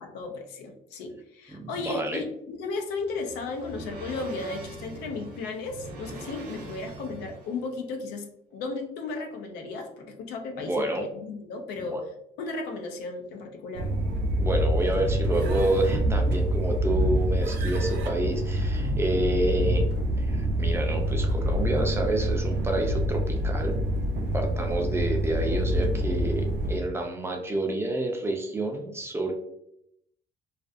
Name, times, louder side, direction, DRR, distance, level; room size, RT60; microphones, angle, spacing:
voice 1, 0.0-12.0 12.4-13.9, left 3 dB, 90° left, 4 dB, 0.5 m, -35 dB
voice 2, 1.5-2.2 10.6-11.0 11.8-12.0 14.4-19.9 20.2-23.7 24.3-29.3, right 1 dB, 15° right, 2 dB, 0.4 m, -29 dB
sound 1, 2.6-7.7, right 3 dB, 60° right, 0.8 m, -43 dB
sound 2, 13.7-26.8, equal, 85° right, 0.5 m, -26 dB
2.4 x 2.2 x 2.5 m, 0.76 s
cardioid pair, 110°, 17 cm